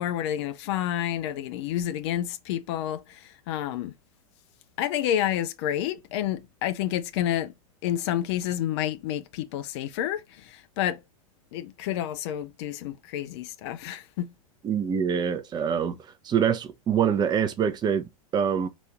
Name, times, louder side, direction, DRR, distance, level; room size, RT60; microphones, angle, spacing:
voice 1, 0.0-4.0 4.8-7.5 7.8-11.0 11.5-14.3, left 11 dB, 50° left, 0.7 m, -29 dB
voice 2, 14.6-16.0 16.2-18.7, right 7 dB, 25° right, 0.7 m, -25 dB
4.1 x 2.6 x 4.7 m
figure-of-eight pair, 95°, 19 cm